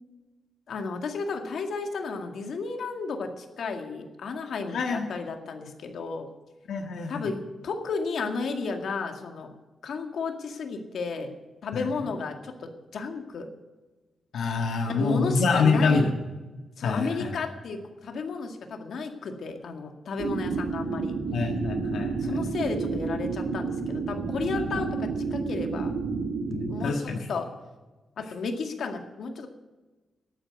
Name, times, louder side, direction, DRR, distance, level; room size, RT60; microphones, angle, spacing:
voice 1, 0.7-6.3 7.1-9.5 9.8-11.4 11.6-13.5 14.9-16.1 16.8-21.2 22.2-25.9 26.7-27.5 28.2-29.5, left 4 dB, 70° left, 5 dB, 2.1 m, -33 dB
voice 2, 4.7-5.1 6.7-7.3 11.7-11.9 14.3-16.0 16.8-17.3 21.3-22.4 24.5-24.8 26.5-27.3, left 4 dB, 85° left, 2 dB, 1.5 m, -26 dB
sound 1, 20.2-26.8, right 4 dB, 75° right, 2.0 m, -30 dB
13.0 x 9.0 x 8.1 m, 1.2 s
wide cardioid pair, 135°, 0 cm